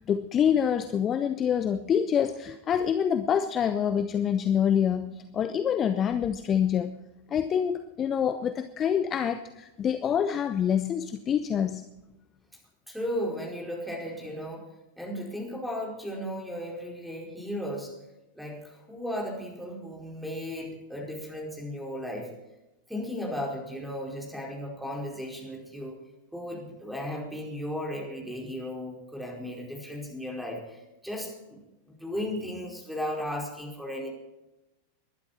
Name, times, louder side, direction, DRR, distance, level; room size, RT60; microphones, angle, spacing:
voice 1, 0.0-6.9 7.3-11.8, left 8 dB, 25° left, 10 dB, 0.8 m, -26 dB
voice 2, 12.9-14.7 15.0-17.9 18.3-22.3 22.9-26.0 26.3-31.6 31.9-34.1, equal, ahead, 0 dB, 4.9 m, -35 dB
21.5 x 11.5 x 4.3 m, 0.96 s
figure-of-eight pair, 90°, 0 cm